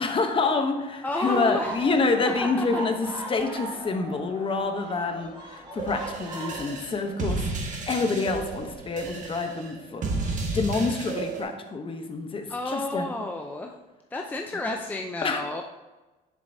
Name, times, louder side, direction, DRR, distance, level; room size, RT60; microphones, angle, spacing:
voice 1, 0.0-10.1 10.5-13.1 15.2-15.4, left 3 dB, 30° left, 6 dB, 0.8 m, -27 dB
voice 2, 1.0-1.8 2.6-2.8 4.9-5.1 12.5-13.7 14.1-15.6, left 2 dB, 10° left, 2 dB, 0.5 m, -31 dB
sound 1, 1.2-6.7, right 1 dB, 25° right, 1.6 m, -38 dB
sound 2, 5.8-11.4, right 3 dB, 50° right, 1.5 m, -32 dB
7.4 x 6.9 x 2.7 m, 1.1 s
cardioid pair, 110°, 17 cm